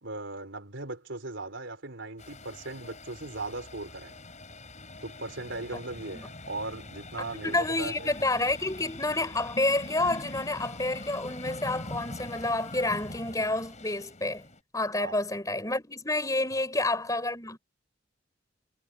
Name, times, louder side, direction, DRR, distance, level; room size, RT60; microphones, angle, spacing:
voice 1, 0.0-4.2 5.0-8.1 15.0-15.2 16.5-16.6, right 2 dB, 80° right, 3.6 m, -38 dB
sound 1, 2.2-14.6, left 2 dB, 40° left, 6.5 m, -43 dB
voice 2, 7.2-14.4 14.7-17.6, left 2 dB, 20° left, 5.5 m, -29 dB
head